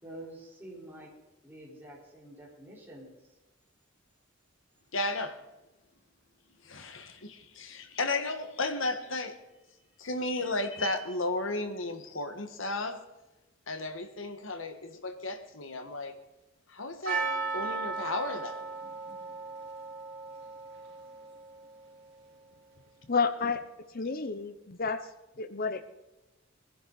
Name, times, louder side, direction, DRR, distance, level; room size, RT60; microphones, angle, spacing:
voice 1, 0.0-1.1 1.4-3.1 9.7-9.8, right 1 dB, 10° right, -5 dB, 4.3 m, -47 dB
voice 2, 4.9-5.4 6.6-9.4 10.0-13.0 13.7-16.1 16.7-17.3 17.5-18.6, left 2 dB, 70° left, 7 dB, 1.6 m, -34 dB
Percussion, 17.1-22.0, right 4 dB, 55° right, 3.4 m, -36 dB
voice 3, 23.1-23.6 23.9-25.1 25.4-25.8, left 4 dB, 45° left, 11 dB, 0.8 m, -30 dB
21.0 x 11.0 x 4.1 m, 1.0 s
head